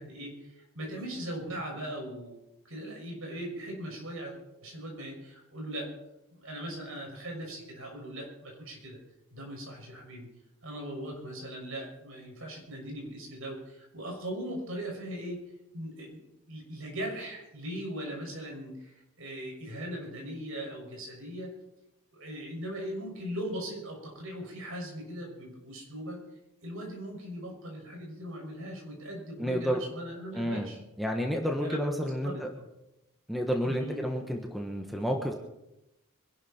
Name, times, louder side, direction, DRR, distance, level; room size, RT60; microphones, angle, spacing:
voice 1, 0.0-2.4 2.7-5.9 6.3-9.0 9.3-10.3 10.6-15.4 15.7-21.5 22.1-26.2 26.6-30.8 31.6-32.7 33.6-34.0, right 1 dB, 65° right, 0 dB, 6.3 m, -39 dB
voice 2, 29.4-29.8 30.3-30.7 31.0-32.5 33.3-35.3, equal, ahead, 2 dB, 1.3 m, -30 dB
24.5 x 12.0 x 4.4 m, 0.91 s
head